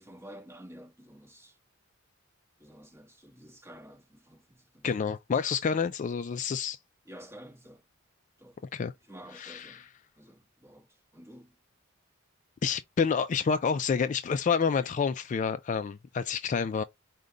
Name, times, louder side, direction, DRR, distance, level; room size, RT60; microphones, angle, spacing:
voice 1, 0.0-1.6 2.6-4.9 7.0-7.8 8.4-8.6 9.0-9.9 10.2-11.5, equal, 15° right, 1.3 m, -50 dB
voice 2, 4.8-6.8 8.7-8.9 9.4-9.8 12.6-16.8, left 6 dB, 40° left, 0.3 m, -28 dB
5.0 x 2.2 x 3.6 m
head